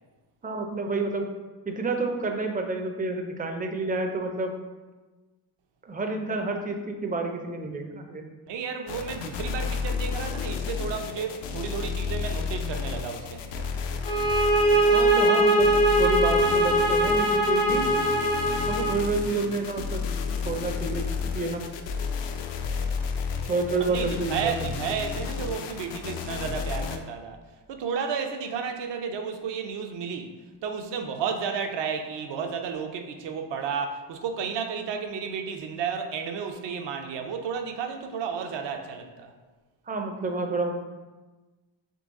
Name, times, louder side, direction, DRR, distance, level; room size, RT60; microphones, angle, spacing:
voice 1, 0.4-1.3 1.7-4.5 5.8-8.3 14.7-17.9 18.7-20.1 20.4-21.6 23.5-24.5 39.9-40.7, right 3 dB, 20° right, 4 dB, 0.4 m, -29 dB
voice 2, 8.5-13.7 23.4-23.5 23.8-27.4 27.7-30.3 30.6-39.3, right 6 dB, 70° right, 5 dB, 0.6 m, -32 dB
sound 1, 8.9-27.0, left 5 dB, 70° left, 0.5 m, -32 dB
sound 2, 14.0-19.0, right 1 dB, 85° left, 1.5 m, -21 dB
3.9 x 3.1 x 3.6 m, 1.2 s
cardioid pair, 105°, 44 cm